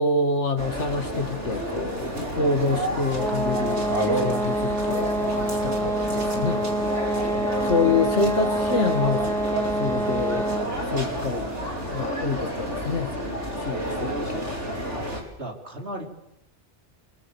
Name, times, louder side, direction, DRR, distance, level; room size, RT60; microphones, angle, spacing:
voice 1, 0.0-3.9 4.1-5.1 5.5-6.7 7.6-9.3 9.8-10.5 10.9-11.5 11.9-13.1 13.6-14.6, left 3 dB, 90° left, 2.4 m, -26 dB
sound 1, 0.6-15.2, equal, 90° right, 5.7 m, -30 dB
sound 2, 3.1-10.8, right 1 dB, ahead, 1.8 m, -27 dB
voice 2, 15.4-16.1, right 1 dB, 65° right, 5.2 m, -36 dB
28.5 x 23.0 x 7.3 m
omnidirectional pair, 1.2 m